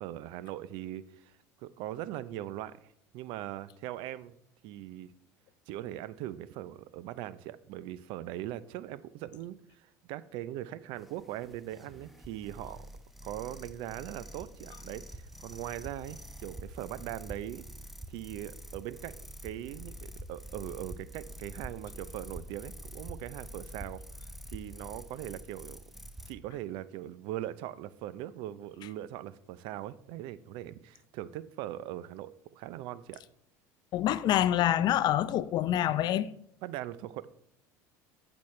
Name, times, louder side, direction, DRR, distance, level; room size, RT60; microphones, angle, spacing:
voice 1, 0.0-1.3 1.6-4.4 4.6-5.1 5.7-12.9 13.2-17.6 18.1-24.0 24.5-25.8 26.3-33.2 36.6-37.3, right 13 dB, 70° right, 0.5 m, -40 dB
sound 1, 11.0-26.3, right 1 dB, ahead, 1.0 m, -46 dB
voice 2, 33.9-36.3, left 12 dB, 55° left, 0.6 m, -26 dB
14.5 x 6.2 x 3.2 m
supercardioid pair, 85°, 9 cm